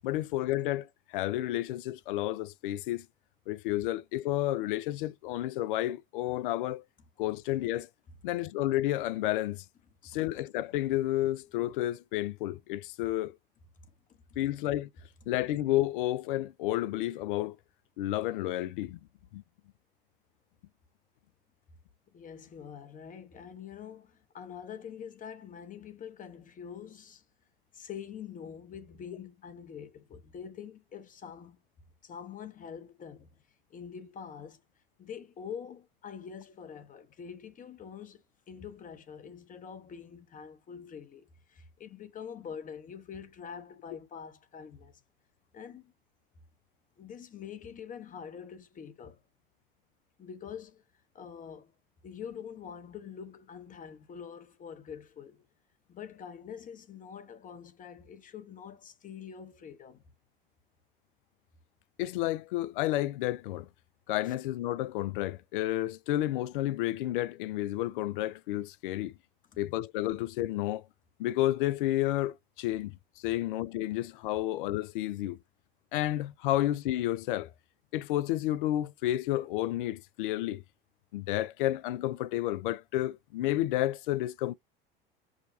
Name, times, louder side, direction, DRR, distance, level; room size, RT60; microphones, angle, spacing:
voice 1, 0.0-0.9 1.1-3.1 3.5-6.8 7.2-7.9 8.2-9.6 10.0-13.4 14.4-14.9 15.3-17.6 18.0-19.0 19.3-19.4 62.0-63.7 64.1-69.1 69.6-70.8 71.2-75.4 75.9-77.5 77.9-80.6 81.1-84.5, left 15 dB, 60° left, 0.5 m, -31 dB
voice 2, 22.1-27.2 27.7-31.6 32.0-33.3 33.7-34.6 35.0-45.0 45.5-45.9 47.0-49.2 50.2-50.8 51.1-51.7 52.0-55.4 55.9-60.1 64.3-64.4, left 7 dB, 25° left, 0.9 m, -45 dB
4.9 x 2.3 x 2.6 m
figure-of-eight pair, 75°, 29 cm